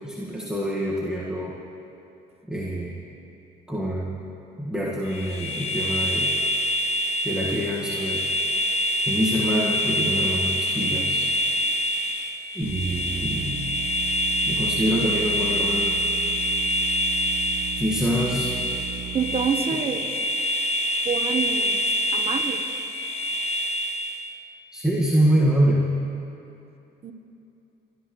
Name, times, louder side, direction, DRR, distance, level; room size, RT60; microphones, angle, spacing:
voice 1, 0.0-1.5 2.5-3.0 3.7-4.2 4.6-6.3 7.2-8.2 9.1-11.2 12.6-13.7 14.5-16.0 17.8-18.5 24.7-26.0, equal, 5° right, -7 dB, 1.8 m, -25 dB
sound 1, 5.1-24.3, equal, 40° left, 1.1 m, -26 dB
sound 2, 12.6-19.5, right 9 dB, 75° right, 1.4 m, -36 dB
voice 2, 19.1-20.2 21.0-21.8 22.1-22.6 27.0-27.1, right 6 dB, 35° right, 6 dB, 1.2 m, -27 dB
25.5 x 13.5 x 3.2 m, 2.8 s
cardioid pair, 110°, 17 cm